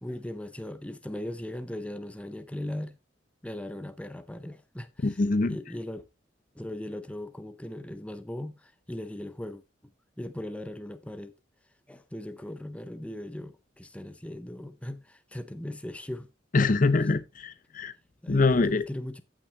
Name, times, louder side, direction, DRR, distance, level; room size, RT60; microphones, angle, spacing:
voice 1, 0.0-3.0 3.4-5.2 5.5-6.0 6.5-9.6 10.2-11.4 11.9-16.3 18.2-19.2, left 1 dB, 5° left, 0.6 m, -38 dB
voice 2, 5.0-5.6 16.5-17.9 18.3-18.8, left 3 dB, 45° left, 0.6 m, -24 dB
14.5 x 6.2 x 2.9 m
head